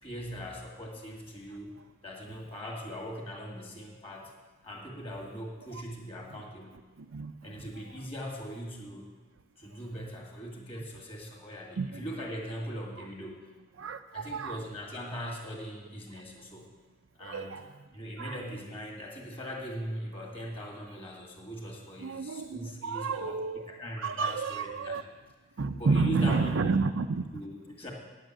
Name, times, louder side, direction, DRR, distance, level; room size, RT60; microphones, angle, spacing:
voice 1, 0.0-1.7 2.0-4.3 4.6-6.8 7.4-9.1 9.6-13.5 14.1-16.8 17.2-17.6 17.9-25.1 25.8-26.8 27.3-27.9, equal, 30° left, 0 dB, 2.0 m, -40 dB
voice 2, 7.0-7.3 7.7-7.8 11.8-12.0 13.8-14.6 17.2-17.8 18.2-18.4 22.0-23.7 24.0-25.0 25.6-27.2, right 4 dB, 80° right, 8 dB, 0.5 m, -30 dB
9.4 x 7.6 x 7.7 m, 1.3 s
head